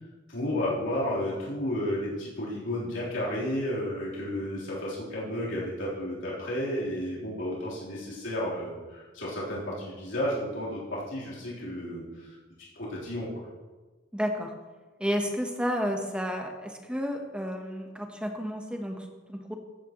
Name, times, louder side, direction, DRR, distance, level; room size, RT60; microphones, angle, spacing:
voice 1, 0.3-12.4 12.8-13.5, left 1 dB, 80° left, -7 dB, 3.5 m, -32 dB
voice 2, 14.1-14.5 15.0-19.5, equal, 5° right, 3 dB, 1.0 m, -31 dB
14.0 x 9.1 x 3.0 m, 1.3 s
head